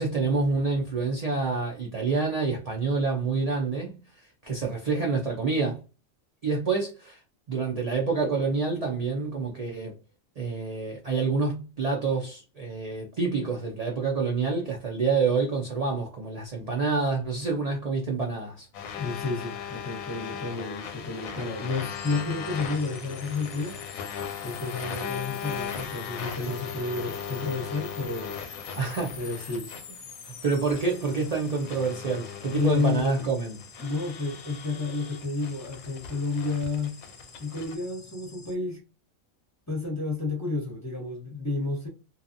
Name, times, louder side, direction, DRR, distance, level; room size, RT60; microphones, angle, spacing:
voice 1, 0.0-5.8 6.4-7.2 7.5-10.0 10.4-18.7 28.8-29.5 30.2-33.6, right 4 dB, 65° right, 0.3 m, -27 dB
sound 1, 18.7-37.7, left 8 dB, 90° left, 1.0 m, -38 dB
voice 2, 19.0-23.8 24.4-28.4 29.2-29.7 32.5-33.3 33.8-37.0 37.4-38.8 39.7-41.9, left 3 dB, 15° left, 0.6 m, -30 dB
sound 2, 21.4-38.5, left 6 dB, 60° left, 0.7 m, -47 dB
2.7 x 2.3 x 2.6 m
omnidirectional pair, 1.4 m